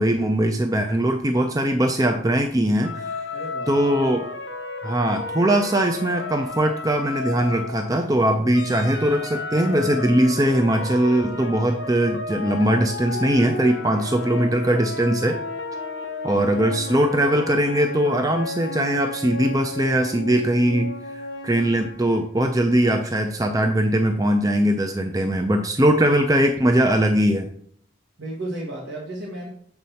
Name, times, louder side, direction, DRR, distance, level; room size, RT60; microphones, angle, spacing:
voice 1, 0.0-3.4 3.7-4.3 4.8-15.4 16.2-20.9 21.4-27.5, right 1 dB, 20° right, 5 dB, 0.5 m, -21 dB
sound 1, 2.8-8.1 8.5-22.2, left 3 dB, 75° left, 1.0 m, -33 dB
voice 2, 3.3-3.8 28.2-29.5, right 1 dB, 65° right, -2 dB, 1.5 m, -33 dB
8.0 x 4.1 x 5.6 m, 0.63 s
head